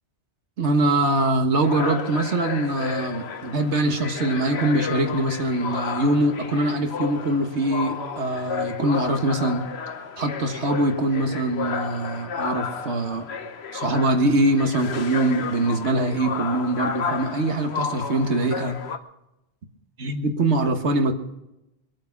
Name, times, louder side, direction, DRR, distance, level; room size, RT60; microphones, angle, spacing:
voice 1, 0.6-9.7 10.2-13.3 13.7-18.8 20.0-21.1, right 2 dB, 85° right, 5 dB, 1.8 m, -23 dB
sound 1, 1.6-19.0, left 6 dB, 70° left, 1.2 m, -32 dB
22.0 x 8.7 x 6.0 m, 0.90 s
omnidirectional pair, 1.1 m